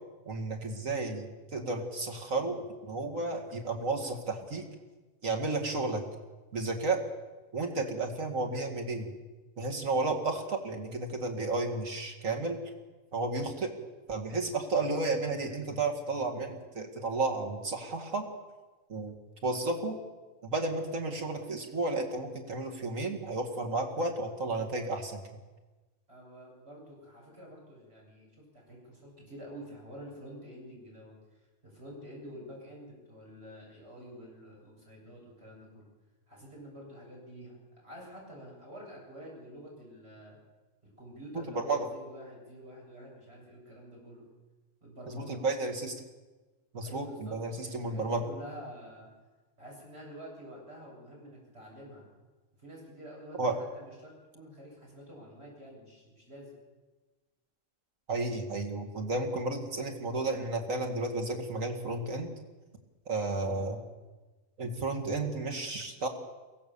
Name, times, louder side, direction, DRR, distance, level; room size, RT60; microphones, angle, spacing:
voice 1, 0.2-2.6 2.8-4.6 5.2-6.0 6.5-7.0 7.5-9.1 9.6-12.6 13.1-13.7 14.1-18.3 18.9-19.2 19.4-20.0 20.4-25.4 41.3-41.9 45.1-45.9 46.7-48.2 53.4-53.6 58.1-62.3 63.1-63.8 64.6-66.1, right 3 dB, 85° right, 2 dB, 2.6 m, -32 dB
voice 2, 26.1-35.9 36.3-40.4 40.8-44.2 44.8-45.4 46.8-49.1 49.6-52.0 52.6-56.5 63.3-63.7, equal, 50° right, -3 dB, 7.7 m, -48 dB
23.0 x 16.5 x 7.0 m, 1.2 s
omnidirectional pair, 1.3 m